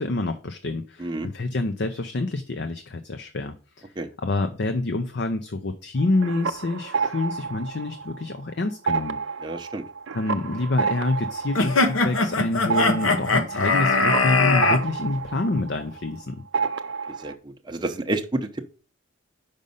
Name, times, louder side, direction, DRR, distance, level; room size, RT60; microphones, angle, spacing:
voice 1, 0.0-3.9 4.2-9.2 10.1-16.4, left 2 dB, 55° left, 8 dB, 0.6 m, -27 dB
sound 1, 6.0-8.4 8.7-16.2 16.5-17.3, right 5 dB, 60° right, 0.5 m, -30 dB
voice 2, 9.4-9.8 17.2-17.3 17.7-18.6, right 2 dB, 20° right, 4 dB, 0.7 m, -29 dB
sound 2, 11.5-14.8, left 3 dB, 80° left, 1.0 m, -21 dB
5.3 x 5.2 x 5.3 m, 0.38 s
head